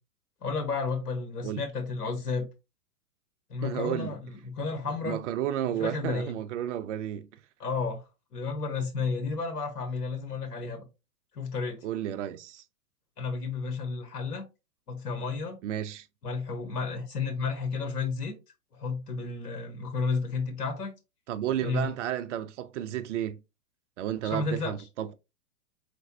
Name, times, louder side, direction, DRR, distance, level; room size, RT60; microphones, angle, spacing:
voice 1, 0.4-2.5 3.5-5.2 5.8-6.4 7.6-8.0 8.3-10.8 11.3-11.8 13.2-14.5 14.9-15.6 16.2-18.4 18.7-20.9 21.6-21.9 24.2-24.7, left 4 dB, 85° left, 1.3 m, -32 dB
voice 2, 3.6-4.1 5.0-7.3 11.8-12.6 15.6-16.1 21.3-23.4 24.0-25.1, right 11 dB, 50° right, 0.6 m, -32 dB
4.6 x 3.3 x 2.7 m
hypercardioid pair, 120°, 47 cm